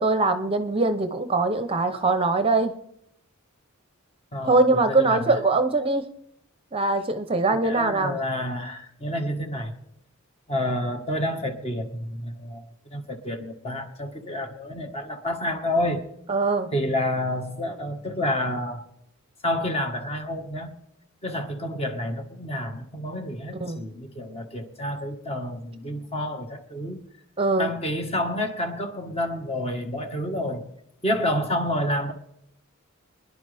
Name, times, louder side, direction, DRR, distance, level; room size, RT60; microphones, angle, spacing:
voice 1, 0.0-2.7 4.4-6.1 6.7-8.2 16.3-16.7 23.6-23.9 27.4-27.7, right 3 dB, 25° right, 0.7 m, -22 dB
voice 2, 4.3-5.4 7.6-9.7 10.5-16.0 16.7-18.8 19.4-20.7 21.2-27.0 27.6-30.7 31.0-32.1, left 1 dB, 30° left, 1.5 m, -29 dB
25.0 x 11.0 x 3.4 m
head